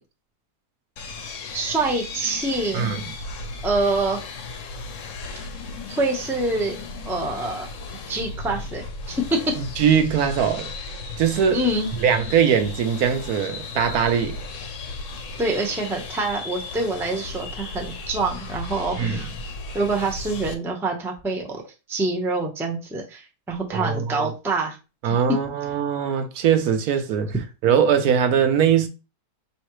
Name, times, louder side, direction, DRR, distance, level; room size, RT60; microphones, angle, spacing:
sound 1, 1.0-20.5, left 3 dB, 60° left, 1.0 m, -35 dB
voice 1, 1.5-2.8 3.6-4.2 5.9-6.8 7.0-7.7 8.1-9.4 11.5-11.9 15.4-19.3 19.7-21.6 21.9-24.8 25.0-25.1, right 2 dB, ahead, 0.5 m, -26 dB
voice 2, 9.8-10.7 11.2-11.6 12.0-14.4 19.0-19.3 23.7-24.3 25.0-27.3 27.6-28.9, right 8 dB, 75° right, 1.1 m, -21 dB
5.5 x 3.1 x 3.0 m
omnidirectional pair, 1.7 m